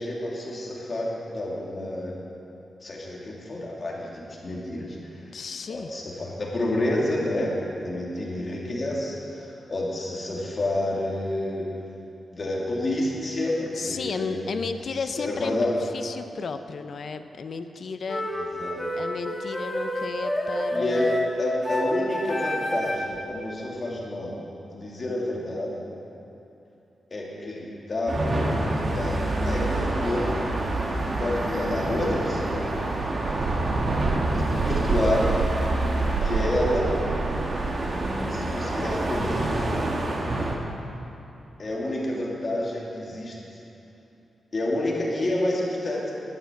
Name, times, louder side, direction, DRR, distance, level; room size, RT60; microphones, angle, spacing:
voice 1, 0.0-2.1 2.8-5.0 5.7-11.6 12.3-14.4 15.2-15.7 18.6-18.8 20.7-24.4 24.7-25.8 27.1-29.2 29.4-30.4 31.2-32.7 34.2-35.3 36.2-36.9 38.3-39.5 41.6-43.3 44.5-46.1, left 1 dB, 35° left, -4 dB, 2.6 m, -29 dB
voice 2, 5.3-5.9 13.7-18.3 18.9-21.2, left 5 dB, 55° left, 9 dB, 0.6 m, -33 dB
sound 1, 18.1-23.2, equal, 10° left, 1.6 m, -29 dB
sound 2, 28.1-40.6, right 1 dB, 40° right, 1.5 m, -27 dB
sound 3, 33.2-38.4, right 6 dB, 90° right, 0.4 m, -30 dB
11.5 x 9.1 x 8.3 m, 2.9 s
wide cardioid pair, 150°, 0 cm